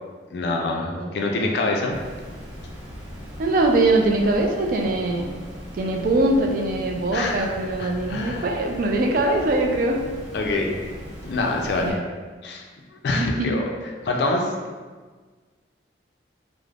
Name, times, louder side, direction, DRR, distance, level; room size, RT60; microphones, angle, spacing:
voice 1, 0.3-2.0 7.1-7.5 7.8-8.5 10.3-10.7 11.2-12.0 12.4-12.6 13.0-13.7 14.0-14.5, left 2 dB, 60° left, 1 dB, 0.3 m, -25 dB
Water, 1.9-11.9, equal, 70° right, 0.8 m, -39 dB
voice 2, 3.4-5.3 5.7-10.0 11.8-12.0 13.2-13.5, right 2 dB, 50° right, 1 dB, 0.3 m, -22 dB
2.4 x 2.0 x 3.2 m, 1.4 s
head